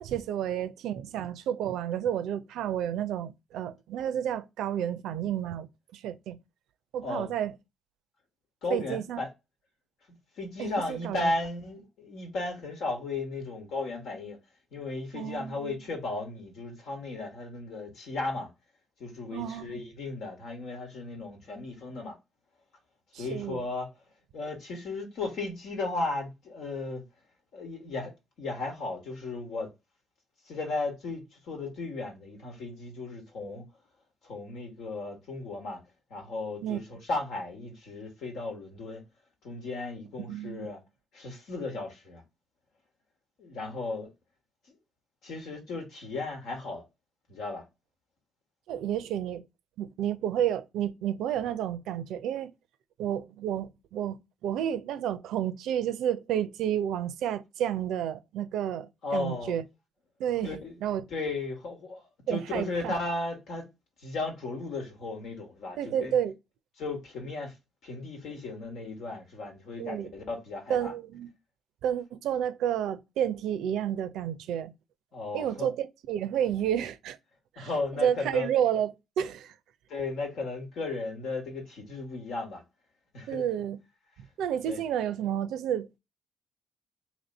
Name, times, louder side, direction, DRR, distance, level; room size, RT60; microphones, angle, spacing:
voice 1, 0.0-6.4 6.9-7.5 8.7-9.2 10.6-11.3 15.1-15.8 19.3-19.9 23.1-23.7 36.6-36.8 40.3-40.7 48.7-49.4 49.8-52.5 53.0-59.6 60.2-61.1 62.3-62.9 65.8-66.3 69.8-70.1 70.7-71.3 71.8-74.7 75.3-77.2 77.6-77.7 78.0-78.9 79.2-79.5 83.3-83.8 84.4-86.0, right 10 dB, 80° right, 0.4 m, -31 dB
voice 2, 8.6-9.3 10.4-14.4 14.7-18.5 19.0-22.2 23.1-23.9 24.3-27.0 27.5-28.1 28.4-29.7 30.5-33.6 34.2-35.8 36.1-39.0 39.4-40.8 41.1-42.2 43.4-44.1 45.2-46.8 47.3-47.6 59.0-59.6 60.4-60.8 61.1-63.6 64.0-66.2 66.8-67.5 67.8-70.9 75.1-75.7 77.6-78.5 79.9-82.6 83.1-83.4 84.7-84.8, left 3 dB, 75° left, 1.4 m, -35 dB
3.1 x 2.7 x 3.9 m
supercardioid pair, 60°, 0 cm